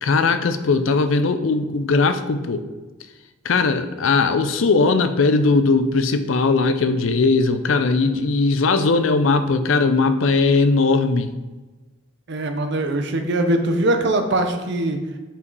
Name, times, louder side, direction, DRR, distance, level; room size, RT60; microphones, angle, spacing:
voice 1, 0.0-2.7 3.4-11.3, left 3 dB, 75° left, 10 dB, 0.5 m, -19 dB
voice 2, 12.3-15.0, right 1 dB, 60° right, 6 dB, 0.7 m, -21 dB
5.6 x 5.2 x 4.0 m, 1.2 s
head